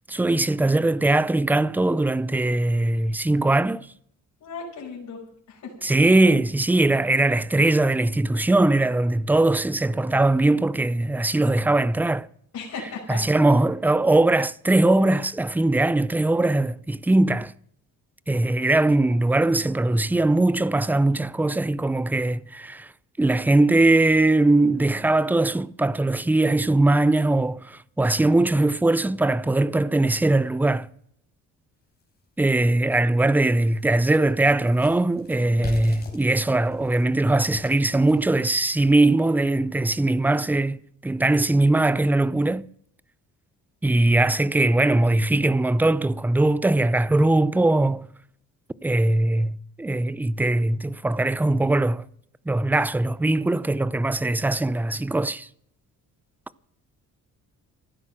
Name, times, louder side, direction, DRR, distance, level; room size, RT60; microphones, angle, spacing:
voice 1, 0.1-3.9 5.8-12.3 13.1-17.5 18.3-22.9 23.2-30.9 32.4-42.7 43.8-48.1 48.8-52.0 52.5-55.5, right 2 dB, 5° right, 0.5 m, -21 dB
voice 2, 4.4-5.2 5.5-5.7 12.5-13.2 35.4-35.8, left 5 dB, 55° left, 5.4 m, -36 dB
sound 1, 32.0-32.1 32.6-32.7 33.1-39.1, left 3 dB, 30° left, 4.3 m, -42 dB
14.5 x 12.0 x 6.3 m
cardioid pair, 105°, 33 cm